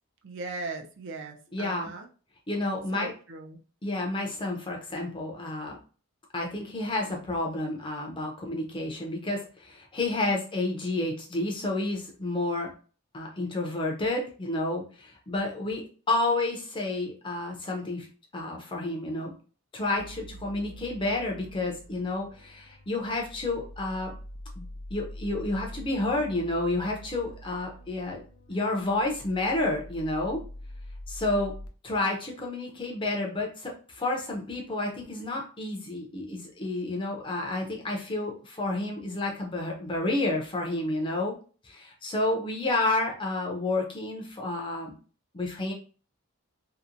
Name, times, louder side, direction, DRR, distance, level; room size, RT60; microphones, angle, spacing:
voice 1, 0.2-2.1 2.9-3.6, right 3 dB, 55° right, 2 dB, 0.4 m, -38 dB
voice 2, 1.5-1.9 2.5-3.1 3.8-5.8 6.3-12.7 13.1-18.1 18.3-19.3 19.7-24.1 24.6-24.7 24.9-28.2 28.5-30.4 31.1-31.5 31.8-41.4 41.6-44.9 45.3-45.7, left 2 dB, 20° left, 0 dB, 0.5 m, -30 dB
sound 1, 20.0-31.7, equal, 80° left, 0.4 m, -44 dB
2.8 x 2.1 x 2.5 m, 0.38 s
head